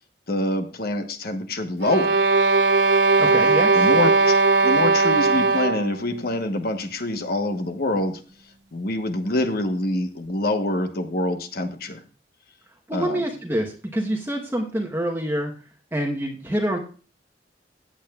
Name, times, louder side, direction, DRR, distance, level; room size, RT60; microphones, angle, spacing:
voice 1, 0.3-2.2 3.7-4.4 4.6-8.2 8.7-12.0 12.9-13.3, left 1 dB, 55° left, 7 dB, 1.1 m, -25 dB
sound 1, 1.8-6.0, right 3 dB, 75° right, 0.9 m, -18 dB
voice 2, 3.1-3.9 12.9-15.5 15.9-16.8, right 1 dB, 15° right, 1 dB, 1.0 m, -26 dB
15.5 x 8.7 x 2.3 m, 0.37 s
head